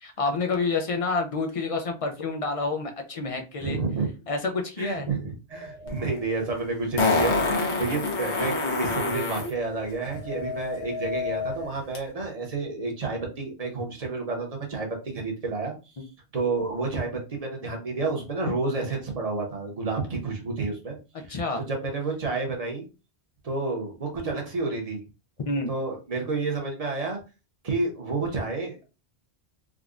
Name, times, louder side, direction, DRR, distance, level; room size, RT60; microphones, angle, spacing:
voice 1, 0.0-3.8 4.3-5.1 21.3-21.6 25.4-25.7, left 3 dB, 50° left, 3 dB, 0.4 m, -28 dB
voice 2, 3.6-4.1 4.8-15.7 16.3-21.4 21.7-22.9 23.4-25.0 25.7-27.2 27.6-28.8, right 3 dB, 35° right, 1 dB, 0.9 m, -30 dB
sound 1, 5.5-6.2 9.5-11.7, left 5 dB, 80° right, 1.0 m, -34 dB
Fart, 5.9-6.0 7.0-9.5 11.9-12.0, left 3 dB, 75° left, 1.1 m, -25 dB
3.6 x 2.2 x 2.4 m, 0.30 s
omnidirectional pair, 1.1 m